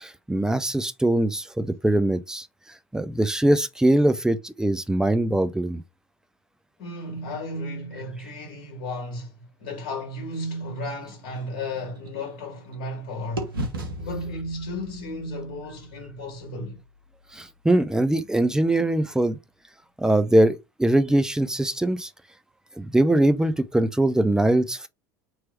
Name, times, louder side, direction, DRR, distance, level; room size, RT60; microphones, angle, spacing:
voice 1, 0.0-2.5 2.9-5.8 17.3-19.4 20.0-22.1 22.8-24.9, right 1 dB, 5° right, 0.5 m, -22 dB
voice 2, 6.8-13.6 14.0-16.8, left 1 dB, 50° left, 1.7 m, -34 dB
sound 1, 10.7-13.0 13.4-17.3, right 1 dB, 75° right, 1.0 m, -38 dB
3.1 x 3.0 x 4.6 m
figure-of-eight pair, 75°, 12 cm